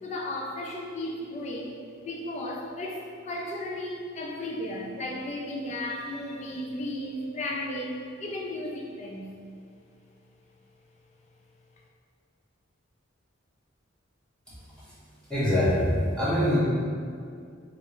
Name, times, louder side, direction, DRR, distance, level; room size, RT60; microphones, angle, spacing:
voice 1, 0.0-1.7 2.0-9.3, left 1 dB, 35° left, -1 dB, 0.3 m, -34 dB
voice 2, 15.3-16.6, equal, 5° left, -13 dB, 0.9 m, -23 dB
3.1 x 2.5 x 2.9 m, 2.3 s
head